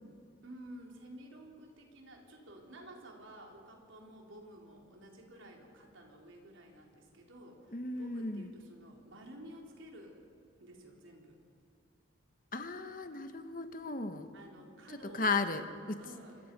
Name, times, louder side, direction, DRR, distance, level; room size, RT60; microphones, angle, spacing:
voice 1, 0.4-10.2 10.6-11.4 14.3-15.4 16.0-16.5, right 1 dB, 80° right, 0 dB, 3.8 m, -52 dB
voice 2, 7.7-8.5 12.5-14.3 15.1-16.0, left 3 dB, 45° left, 8 dB, 1.2 m, -35 dB
26.0 x 22.0 x 5.4 m, 2.5 s
head